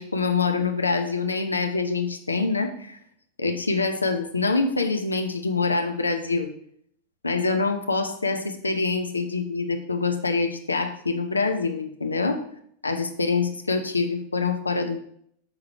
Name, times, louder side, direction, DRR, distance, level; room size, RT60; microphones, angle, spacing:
voice 1, 0.0-3.0 3.4-6.5 7.2-12.4 12.8-15.0, left 4 dB, 80° left, 5 dB, 0.6 m, -25 dB
6.2 x 3.8 x 4.4 m, 0.66 s
figure-of-eight pair, 90°, 0 cm